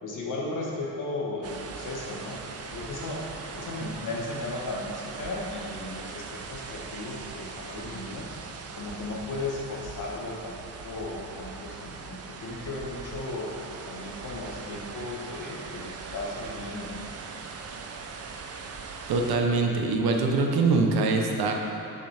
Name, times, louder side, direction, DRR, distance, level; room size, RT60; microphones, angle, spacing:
voice 1, 0.0-8.3 8.8-10.6 10.8-13.5 13.9-17.2, left 2 dB, 50° left, -2 dB, 1.3 m, -36 dB
sound 1, 1.4-19.4, right 4 dB, 40° right, 0.5 m, -40 dB
voice 2, 19.1-21.5, right 3 dB, 70° right, 2 dB, 0.9 m, -23 dB
8.1 x 6.8 x 3.4 m, 3.0 s
cardioid pair, 150°, 39 cm